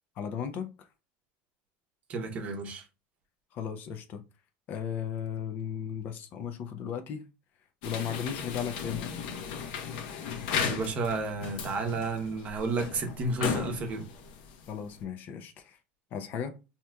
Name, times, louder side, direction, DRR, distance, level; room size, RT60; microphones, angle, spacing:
voice 1, 0.2-0.9 3.5-4.2 4.7-7.2 7.8-9.1 14.7-15.8 16.1-16.6, left 8 dB, 40° left, 0.4 m, -36 dB
voice 2, 2.1-2.8 10.6-14.1, right 3 dB, 30° right, 0.8 m, -32 dB
sound 1, 7.8-15.0, left 6 dB, 75° left, 0.8 m, -36 dB
4.7 x 2.8 x 2.2 m
cardioid pair, 160°, 5 cm